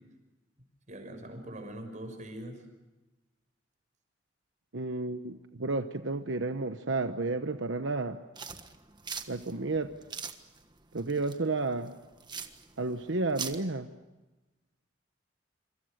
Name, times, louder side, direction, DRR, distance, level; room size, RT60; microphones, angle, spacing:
voice 1, 0.9-2.6, right 1 dB, 40° right, 6 dB, 6.1 m, -42 dB
voice 2, 4.7-8.2 9.3-9.9 10.9-11.9 12.8-13.9, right 3 dB, 85° right, 8 dB, 1.1 m, -31 dB
sound 1, 8.4-13.6, right 6 dB, 25° right, 1.5 m, -42 dB
27.0 x 26.0 x 6.6 m, 1.1 s
head